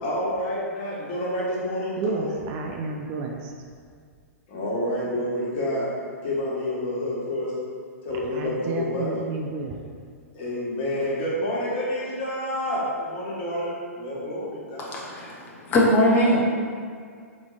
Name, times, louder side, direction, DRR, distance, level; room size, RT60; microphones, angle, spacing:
voice 1, 0.0-2.3 4.5-5.9 6.2-7.5 8.0-9.1 10.3-15.0, left 1 dB, 45° left, -6 dB, 1.3 m, -28 dB
voice 2, 2.0-3.5 8.1-9.8, right 4 dB, 35° right, 1 dB, 0.4 m, -31 dB
voice 3, 14.8-16.5, left 1 dB, 25° left, -4 dB, 0.8 m, -21 dB
4.5 x 3.8 x 2.5 m, 2.1 s
figure-of-eight pair, 110°, 8 cm